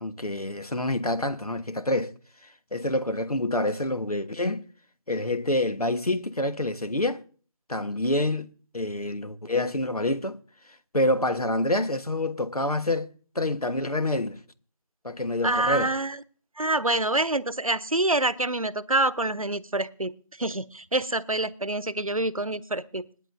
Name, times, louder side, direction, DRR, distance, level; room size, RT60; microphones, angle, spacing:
voice 1, 0.0-2.1 2.7-4.6 5.1-7.2 7.7-8.5 8.7-10.4 10.9-13.1 13.3-14.4 15.0-15.9, left 1 dB, 85° left, 1.2 m, -27 dB
voice 2, 15.4-16.2 16.6-20.1 20.4-23.0, right 2 dB, 70° right, 0.8 m, -26 dB
26.5 x 9.9 x 2.6 m
figure-of-eight pair, 180°, 19 cm